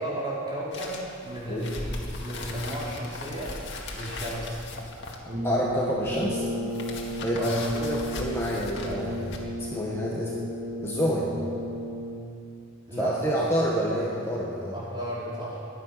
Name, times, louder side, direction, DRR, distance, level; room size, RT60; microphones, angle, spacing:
voice 1, 0.0-3.5 3.9-4.6 7.4-7.7 12.9-13.3 14.7-15.6, right 1 dB, 25° right, -7 dB, 4.7 m, -34 dB
sound 1, 0.7-9.4, left 2 dB, 60° left, 2.1 m, -39 dB
Brass instrument, 5.2-12.4, equal, 60° right, 4.5 m, -34 dB
voice 2, 5.4-6.4 7.2-10.4 10.8-11.3 13.0-14.8, equal, 15° left, -4 dB, 1.6 m, -28 dB
23.0 x 9.8 x 5.9 m, 2.4 s
head